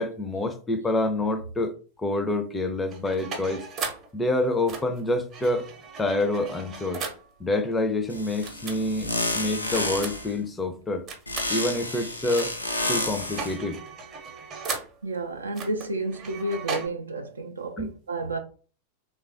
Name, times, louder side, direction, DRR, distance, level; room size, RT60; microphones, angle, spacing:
voice 1, 0.0-1.7 2.0-3.7 4.1-5.7 6.0-7.0 7.4-11.1 11.5-12.5 12.9-13.8 17.8-17.9, left 2 dB, 10° left, 0.4 m, -27 dB
sound 1, 2.9-4.1 4.7-7.3 8.4-8.8 9.7-10.4 11.1-11.5 12.3-12.7 12.9-15.0 15.5-16.9, right 4 dB, 30° right, 0.7 m, -36 dB
sound 2, 8.1-10.3 11.3-13.6, left 2 dB, 85° left, 0.4 m, -30 dB
voice 2, 15.0-18.4, right 2 dB, 75° right, 0.3 m, -31 dB
3.2 x 2.2 x 2.4 m
figure-of-eight pair, 90°, 0 cm